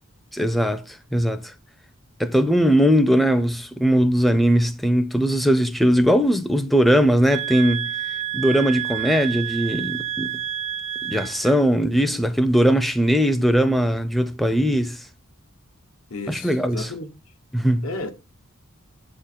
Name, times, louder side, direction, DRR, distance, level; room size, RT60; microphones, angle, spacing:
voice 1, 0.3-1.5 2.2-7.9 8.3-10.3 11.0-15.1 16.3-16.9 17.5-17.9, equal, ahead, 0.4 m, -20 dB
sound 1, 7.3-11.6, right 11 dB, 65° right, 0.4 m, -29 dB
voice 2, 16.1-17.1 17.8-18.1, left 2 dB, 85° left, 0.9 m, -32 dB
7.9 x 3.7 x 4.1 m
head